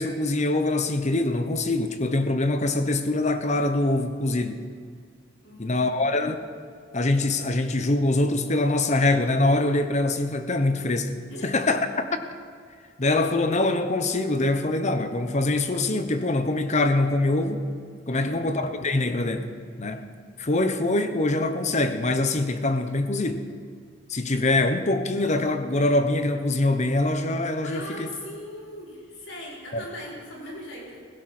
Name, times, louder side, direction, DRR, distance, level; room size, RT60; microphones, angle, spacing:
voice 1, 0.0-4.6 5.6-6.5 6.9-12.2 13.0-17.7 18.1-19.5 19.8-20.1 20.4-23.5 24.1-28.1 29.7-29.8, left 2 dB, 40° left, 8 dB, 1.0 m, -24 dB
voice 2, 5.4-6.2 11.3-11.5 18.1-18.5 27.6-31.0, left 1 dB, 90° left, -4 dB, 4.8 m, -39 dB
17.0 x 16.5 x 4.4 m, 2.1 s
head